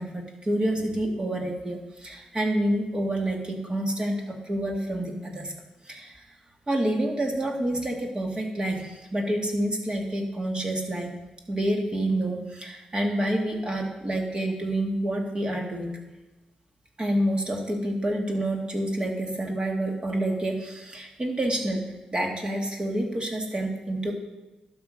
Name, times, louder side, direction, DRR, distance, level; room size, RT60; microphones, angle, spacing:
voice 1, 0.0-5.5 5.9-6.2 6.7-11.2 11.5-16.0 17.0-24.1, right 1 dB, 30° right, 2 dB, 2.1 m, -28 dB
11.5 x 6.2 x 5.2 m, 1.1 s
hypercardioid pair, 45°, 3 cm